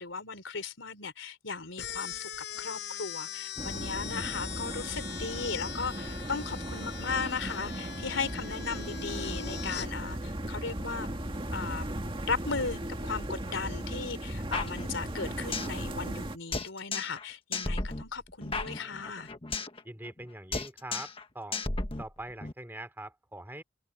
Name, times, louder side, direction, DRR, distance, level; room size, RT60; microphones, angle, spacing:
voice 1, 0.0-2.3 2.6-11.1 11.5-11.9 12.2-19.3, left 4 dB, 80° left, 3.7 m, -36 dB
sound 1, 1.8-9.9, left 9 dB, 60° left, 5.4 m, -41 dB
sound 2, 3.6-16.4, right 1 dB, 25° right, 2.2 m, -37 dB
sound 3, 14.5-15.8 16.1-16.2 16.5-17.2 17.5-19.8 20.0-20.3 20.5-21.2 21.5-22.5, left 3 dB, 30° left, 1.4 m, -34 dB
voice 2, 19.8-21.6 22.0-23.6, right 1 dB, 10° right, 2.9 m, -43 dB
head